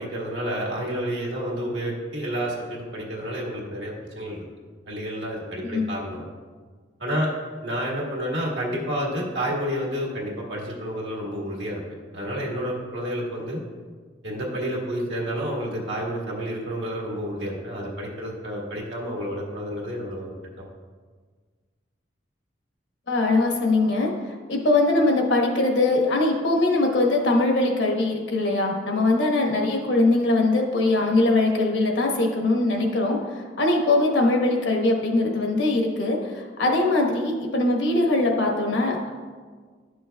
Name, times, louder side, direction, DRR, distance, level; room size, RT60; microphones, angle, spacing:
voice 1, 0.0-4.4 4.9-6.2 7.0-7.3 7.6-11.8 12.1-13.6 14.2-20.7, equal, 80° right, -3 dB, 1.7 m, -30 dB
voice 2, 23.1-24.1 24.5-33.2 33.6-39.1, left 2 dB, 75° left, 0 dB, 1.2 m, -21 dB
11.0 x 6.2 x 2.3 m, 1.5 s
head